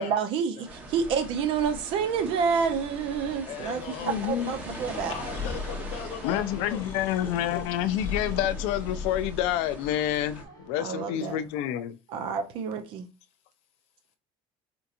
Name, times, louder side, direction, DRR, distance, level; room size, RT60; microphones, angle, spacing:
voice 1, 0.0-5.1 10.8-11.4 12.1-13.1, right 6 dB, 60° right, 0.6 m, -28 dB
sound 1, 0.6-10.4, right 1 dB, 15° right, 0.8 m, -42 dB
voice 2, 3.4-4.2 5.1-6.8, left 9 dB, 65° left, 0.8 m, -38 dB
voice 3, 4.0-4.5 6.2-12.0, left 11 dB, 85° left, 0.4 m, -28 dB
Breathing, 4.4-9.5, left 4 dB, 25° left, 1.1 m, -38 dB
Fixed-wing aircraft airplane, 6.3-11.7, left 6 dB, 40° left, 0.6 m, -49 dB
4.4 x 2.8 x 2.5 m
cardioid pair, 165°, 11 cm